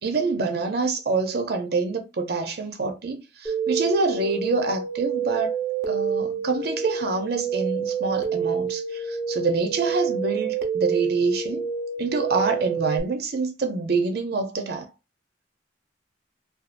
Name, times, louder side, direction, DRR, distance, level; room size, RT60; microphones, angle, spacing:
voice 1, 0.0-5.5 5.9-11.6 12.0-14.9, right 3 dB, 55° right, 0.5 m, -26 dB
sound 1, 3.5-13.0, right 6 dB, 15° left, 0.6 m, -28 dB
2.6 x 2.3 x 2.5 m
head